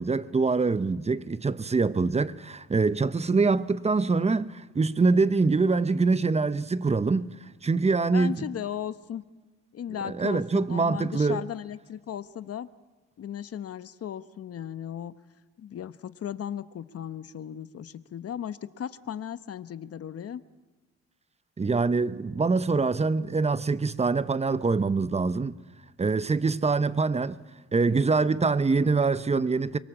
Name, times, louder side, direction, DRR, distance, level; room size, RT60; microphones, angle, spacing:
voice 1, 0.0-7.3 7.6-8.4 10.0-11.4 21.6-25.6 26.0-27.4 27.7-29.8, right 4 dB, 20° right, 0.9 m, -24 dB
voice 2, 8.1-9.2 9.7-12.7 13.2-15.1 15.6-20.4, left 9 dB, 50° left, 1.0 m, -36 dB
24.0 x 23.0 x 7.5 m
cardioid pair, 90°, 30 cm